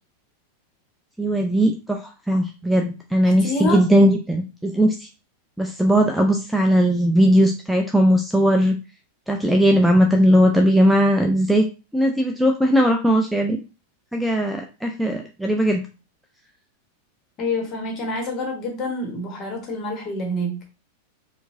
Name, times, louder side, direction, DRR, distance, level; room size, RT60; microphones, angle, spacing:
voice 1, 1.2-5.1 5.6-8.8 9.3-11.6 11.9-13.6 14.1-15.8, equal, ahead, 3 dB, 0.4 m, -18 dB
voice 2, 3.2-3.9 17.4-20.6, left 1 dB, 35° left, 2 dB, 1.4 m, -27 dB
4.4 x 2.5 x 2.7 m, 0.31 s
figure-of-eight pair, 90°, 0 cm